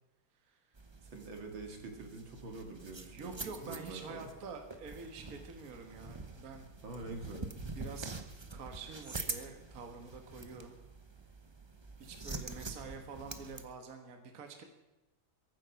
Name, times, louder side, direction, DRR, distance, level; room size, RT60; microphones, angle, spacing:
voice 1, 0.5-0.8 3.1-6.7 7.7-8.1 8.5-10.7 12.0-14.6, right 4 dB, 50° right, 5 dB, 1.9 m, -47 dB
sound 1, 0.7-13.6, right 3 dB, 30° right, 0.4 m, -46 dB
voice 2, 1.0-4.3 6.8-7.4, right 2 dB, 75° right, 3 dB, 2.9 m, -45 dB
22.5 x 9.4 x 5.8 m, 0.98 s
omnidirectional pair, 2.2 m